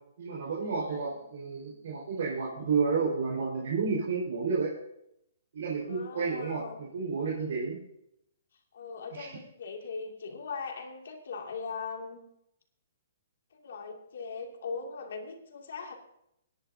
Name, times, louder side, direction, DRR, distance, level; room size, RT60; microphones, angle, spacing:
voice 1, 0.2-4.7 5.5-7.8 9.1-9.4, right 5 dB, 65° right, -4 dB, 4.6 m, -31 dB
voice 2, 0.9-1.3 5.8-6.8 8.7-12.3 13.5-16.0, left 5 dB, 70° left, 2 dB, 2.5 m, -40 dB
27.0 x 10.5 x 2.8 m, 0.78 s
hypercardioid pair, 165°, 0 cm